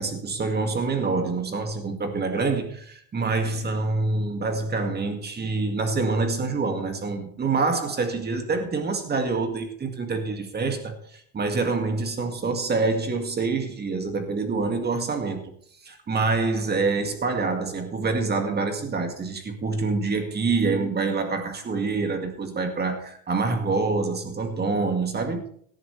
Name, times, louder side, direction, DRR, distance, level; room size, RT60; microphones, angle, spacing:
voice 1, 0.0-15.5 15.8-25.4, right 3 dB, 25° right, 2.2 m, -26 dB
17.0 x 10.5 x 3.3 m
supercardioid pair, 105°, 38 cm